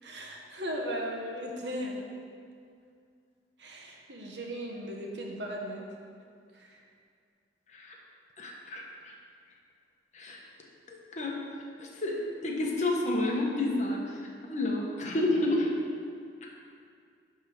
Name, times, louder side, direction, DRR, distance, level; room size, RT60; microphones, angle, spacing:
voice 1, 0.0-2.0 3.6-5.9 6.5-6.8, equal, 85° right, 0 dB, 1.2 m, -37 dB
voice 2, 8.4-9.1 10.1-10.4 10.9-11.4 11.8-14.0 14.4-15.7 16.4-16.5, left 2 dB, 40° left, -1 dB, 1.2 m, -30 dB
10.5 x 3.6 x 6.2 m, 2.3 s
head